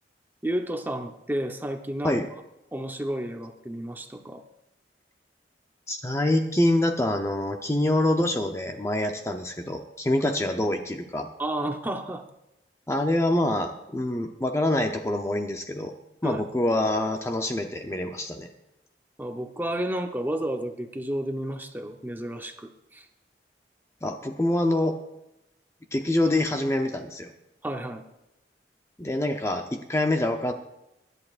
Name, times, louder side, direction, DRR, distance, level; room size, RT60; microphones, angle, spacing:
voice 1, 0.4-2.2 2.7-4.4 11.4-12.2 16.2-16.4 19.2-23.0 27.6-28.0, right 1 dB, 10° right, 5 dB, 0.9 m, -31 dB
voice 2, 5.9-11.3 12.9-15.9 16.2-18.5 24.0-25.0 25.9-27.3 29.0-30.5, left 1 dB, 15° left, 4 dB, 0.7 m, -25 dB
23.5 x 11.0 x 2.5 m, 0.90 s
head